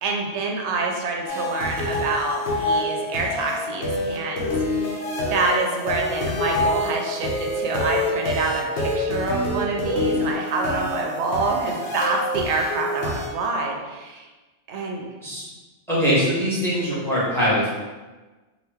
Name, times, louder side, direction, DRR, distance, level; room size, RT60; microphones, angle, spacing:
voice 1, 0.0-5.0 5.3-14.3 14.7-15.0, right 3 dB, 90° right, 1 dB, 0.9 m, -27 dB
sound 1, 1.3-13.3, left 1 dB, 80° left, 1.0 m, -26 dB
voice 2, 15.9-17.7, equal, ahead, -8 dB, 0.9 m, -22 dB
2.9 x 2.4 x 3.4 m, 1.2 s
omnidirectional pair, 1.1 m